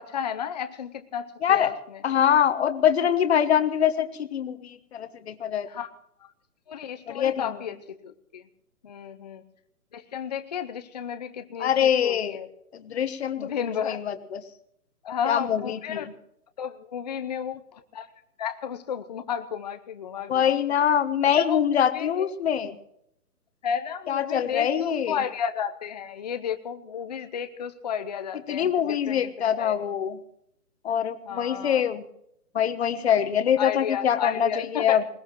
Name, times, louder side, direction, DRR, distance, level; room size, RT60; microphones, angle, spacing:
voice 1, 0.0-2.0 5.6-5.9 6.2-6.3 6.7-7.8 8.0-8.4 8.8-9.4 9.9-12.5 13.4-14.0 15.0-16.1 16.6-18.1 18.4-20.6 21.4-21.7 21.9-22.3 23.6-29.9 31.2-31.9 33.6-35.0, left 8 dB, 30° left, 8 dB, 0.7 m, -33 dB
voice 2, 1.4-1.7 2.0-5.7 7.1-7.6 11.6-12.4 12.7-13.5 13.8-14.4 15.2-16.0 20.3-22.8 24.1-25.2 28.5-30.2 30.8-32.0 32.5-35.0, left 9 dB, 45° left, 11 dB, 1.3 m, -24 dB
20.5 x 19.5 x 3.0 m, 0.76 s
hypercardioid pair, 155°, 46 cm